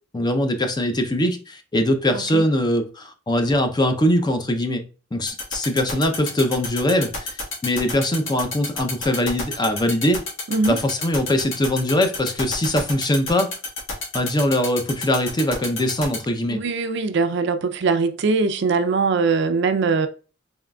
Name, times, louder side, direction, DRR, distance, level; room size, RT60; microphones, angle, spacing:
voice 1, 0.1-4.8 5.1-7.4 7.6-10.2 10.7-13.5 14.1-16.6, left 1 dB, 20° left, 0.5 m, -22 dB
sound 1, 5.3-16.2, left 4 dB, 90° left, 1.5 m, -28 dB
voice 2, 16.5-20.1, right 4 dB, 65° right, 0.4 m, -21 dB
4.0 x 3.7 x 2.2 m
head